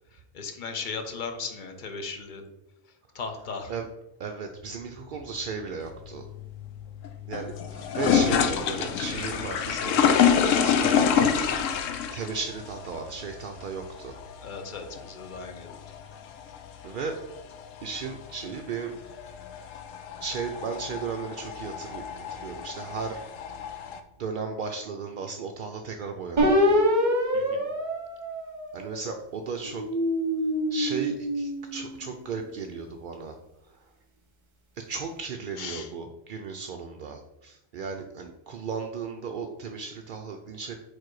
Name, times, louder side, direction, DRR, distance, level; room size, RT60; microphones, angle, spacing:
voice 1, 0.1-2.4 2.9-3.7 14.4-15.8 27.3-27.6 35.6-35.9, left 4 dB, 45° left, 6 dB, 0.8 m, -37 dB
voice 2, 4.2-6.3 7.3-11.3 12.1-14.2 16.8-17.2 17.8-18.9 19.6-19.7 20.2-23.3 24.2-26.8 28.7-29.8 30.7-33.4 33.6-33.9 34.9-40.7, right 5 dB, 65° right, 4 dB, 0.5 m, -35 dB
sound 1, 5.8-24.0, left 7 dB, 75° left, 1.0 m, -28 dB
sound 2, 26.4-29.1 29.6-32.1, equal, 40° right, 1.0 m, -26 dB
4.7 x 4.4 x 4.6 m, 0.90 s
omnidirectional pair, 1.3 m